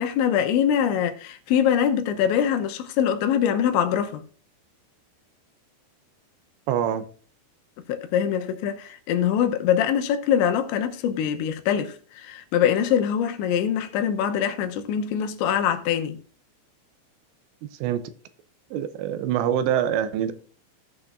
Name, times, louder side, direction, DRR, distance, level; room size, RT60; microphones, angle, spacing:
voice 1, 0.0-4.2 7.9-16.2, left 9 dB, 85° left, 3.2 m, -23 dB
voice 2, 6.7-7.0 17.8-18.0 18.7-20.3, right 9 dB, 80° right, 2.8 m, -24 dB
17.5 x 6.0 x 2.5 m
omnidirectional pair, 5.2 m